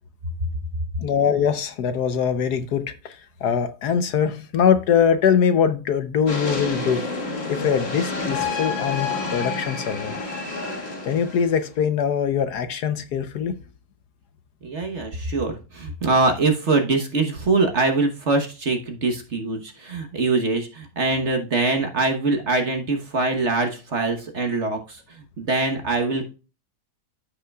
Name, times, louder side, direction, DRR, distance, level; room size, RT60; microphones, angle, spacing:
voice 1, 1.0-7.0 7.5-10.2 11.0-13.6, left 7 dB, 65° left, 1.2 m, -22 dB
sound 1, 6.3-11.7, left 3 dB, 35° left, 1.8 m, -29 dB
voice 2, 14.6-26.3, right 3 dB, 45° right, 1.3 m, -23 dB
14.0 x 5.6 x 2.3 m
omnidirectional pair, 2.0 m